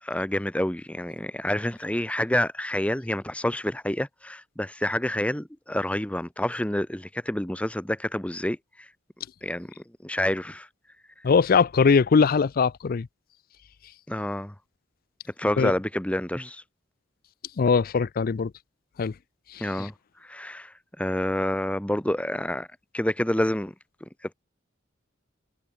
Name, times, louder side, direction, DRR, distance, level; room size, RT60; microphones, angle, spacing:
voice 1, 0.0-8.9 9.4-10.7 11.2-11.3 14.1-14.5 15.4-16.6 19.6-19.9 20.2-22.7 22.9-23.7 24.2-24.3, left 1 dB, 5° left, 1.0 m, -28 dB
voice 2, 11.2-13.1 15.6-15.7 17.6-18.5 19.0-19.1, left 5 dB, 50° left, 0.4 m, -21 dB
head